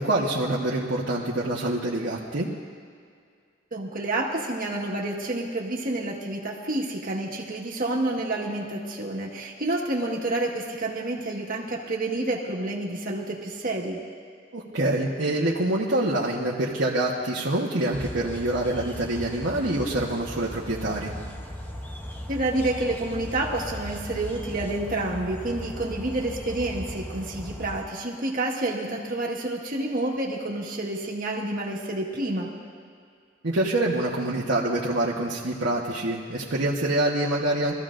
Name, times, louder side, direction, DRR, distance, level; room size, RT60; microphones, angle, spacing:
voice 1, 0.0-2.5 14.5-21.1 33.4-37.7, right 1 dB, 70° right, -6 dB, 1.2 m, -26 dB
voice 2, 3.7-14.0 22.3-32.5, right 2 dB, 45° right, -1 dB, 1.6 m, -29 dB
sound 1, 17.9-27.8, left 1 dB, 10° left, 0.8 m, -38 dB
22.5 x 14.5 x 2.6 m, 2.2 s
head